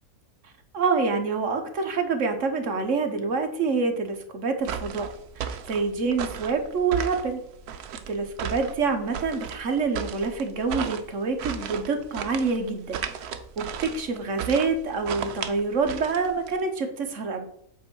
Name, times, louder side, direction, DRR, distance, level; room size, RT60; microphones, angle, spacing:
voice 1, 0.7-5.1 5.4-7.4 7.7-7.8 8.1-13.0 13.3-17.5, right 4 dB, 55° right, 5 dB, 1.4 m, -27 dB
sound 1, 4.6-16.6, right 8 dB, 80° right, 1.2 m, -35 dB
8.2 x 3.8 x 6.1 m, 0.73 s
omnidirectional pair, 1.6 m